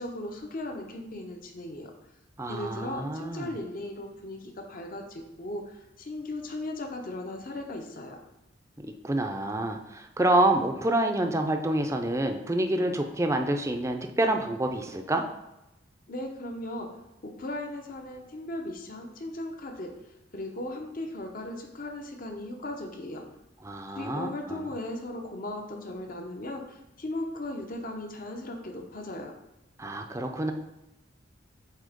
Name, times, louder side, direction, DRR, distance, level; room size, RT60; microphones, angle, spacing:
voice 1, 0.0-1.9 2.5-8.2 16.1-16.9 17.2-19.9 20.3-23.2 23.9-29.3, left 1 dB, 45° left, 3 dB, 0.8 m, -37 dB
voice 2, 2.4-3.5 8.8-15.2 23.6-24.6 29.8-30.5, right 1 dB, 15° right, 5 dB, 0.5 m, -27 dB
7.6 x 2.9 x 5.0 m, 0.91 s
head